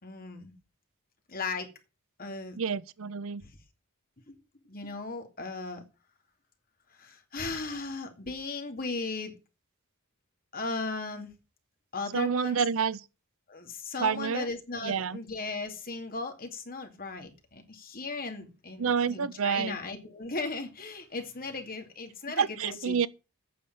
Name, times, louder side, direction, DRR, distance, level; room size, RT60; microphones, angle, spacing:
voice 1, 0.0-0.5 1.3-1.7 2.2-2.6 3.4-3.5 4.3-4.4 4.7-5.8 6.9-9.4 10.5-11.3 11.9-12.6 13.5-23.1, left 3 dB, 40° left, 2.4 m, -37 dB
voice 2, 2.6-3.4 12.1-13.0 14.0-14.5 14.8-15.2 18.8-19.8 22.4-23.1, right 6 dB, 65° right, 0.6 m, -28 dB
8.7 x 6.9 x 8.7 m
head